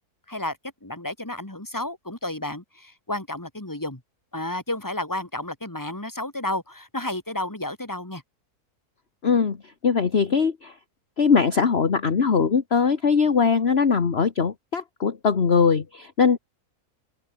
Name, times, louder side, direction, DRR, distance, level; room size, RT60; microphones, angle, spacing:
voice 1, 0.8-4.0 4.3-8.2, left 1 dB, 10° left, 3.1 m, -31 dB
voice 2, 9.2-9.6 9.8-10.7 11.2-16.4, left 5 dB, 40° left, 1.6 m, -21 dB
open air
omnidirectional pair, 1.6 m